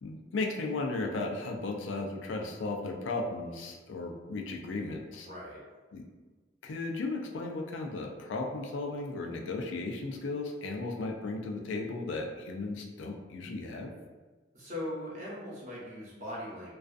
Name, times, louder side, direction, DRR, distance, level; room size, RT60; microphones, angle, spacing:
voice 1, 0.0-5.3 5.9-6.0 6.6-13.9, left 3 dB, 85° left, 2 dB, 0.4 m, -35 dB
voice 2, 5.2-5.6 14.5-16.7, left 1 dB, 40° right, -7 dB, 0.8 m, -40 dB
2.4 x 2.3 x 2.4 m, 1.3 s
head